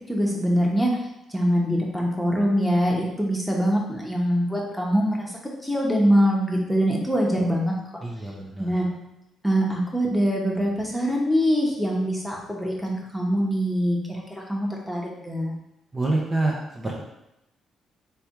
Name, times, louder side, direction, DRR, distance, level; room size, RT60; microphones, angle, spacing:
voice 1, 0.1-0.9 1.3-7.7 8.6-8.9 9.4-15.5, equal, ahead, -2 dB, 1.1 m, -23 dB
voice 2, 8.0-8.8 15.9-17.0, right 2 dB, 25° right, -3 dB, 0.7 m, -27 dB
3.4 x 3.4 x 4.4 m, 0.88 s
cardioid pair, 90°, 0 cm